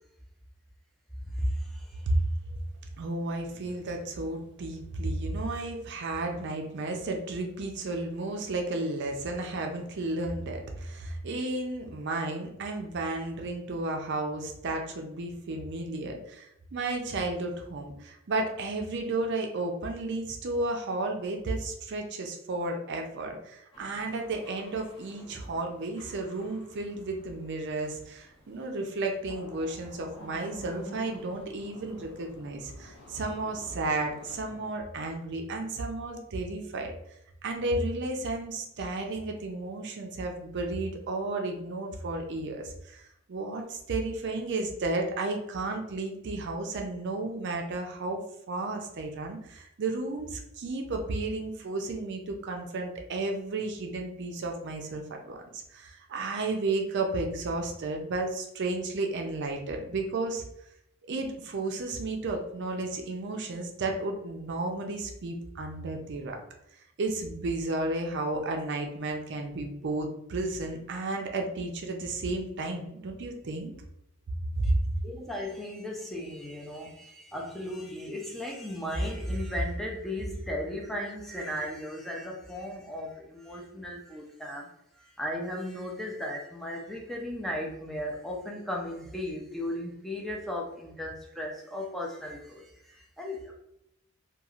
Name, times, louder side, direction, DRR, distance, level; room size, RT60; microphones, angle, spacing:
voice 1, 1.2-2.0 74.6-74.7 75.0-84.7 85.0-93.5, equal, ahead, -1 dB, 0.4 m, -35 dB
voice 2, 3.0-36.9 37.4-43.0 43.3-55.4 55.7-60.4 61.1-66.4 67.0-73.7 74.5-74.7, right 2 dB, 60° right, 3 dB, 0.5 m, -33 dB
sound 1, 23.7-34.4, equal, 25° left, 1.0 m, -53 dB
sound 2, 29.3-34.8, left 1 dB, 85° left, 0.5 m, -52 dB
3.0 x 2.3 x 2.4 m, 0.80 s
head